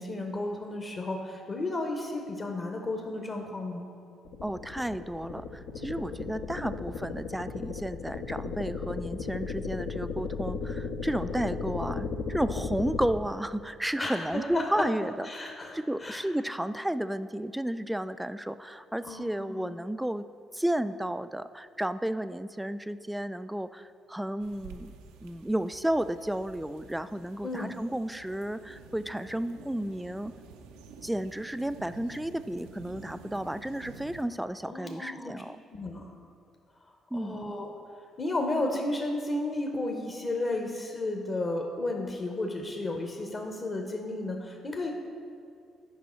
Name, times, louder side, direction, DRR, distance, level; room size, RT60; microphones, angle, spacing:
voice 1, 0.0-3.9 6.5-6.8 14.0-14.8 15.2-16.2 19.1-19.6 27.4-27.7 34.7-35.3 35.7-36.1 37.1-37.7 38.2-44.9, left 2 dB, 40° left, 2 dB, 0.9 m, -33 dB
sound 1, 4.2-13.1, left 4 dB, 70° left, 0.7 m, -35 dB
voice 2, 4.4-20.2 20.5-24.9 25.2-30.3 31.0-35.6 37.1-37.4, right 1 dB, 5° right, 13 dB, 0.3 m, -32 dB
sound 2, 24.4-34.2, right 5 dB, 75° right, 0.5 m, -50 dB
8.5 x 5.4 x 4.4 m, 2.4 s
hypercardioid pair, 50°, 0 cm